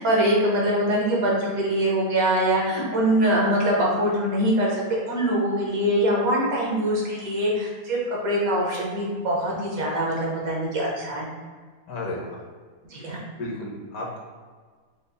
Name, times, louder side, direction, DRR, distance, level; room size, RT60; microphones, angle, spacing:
voice 1, 0.0-11.3 12.9-13.2, right 1 dB, 70° right, -3 dB, 1.4 m, -23 dB
voice 2, 11.9-12.4 13.0-14.2, left 2 dB, 70° left, -3 dB, 1.3 m, -34 dB
5.1 x 2.0 x 4.0 m, 1.5 s
omnidirectional pair, 1.6 m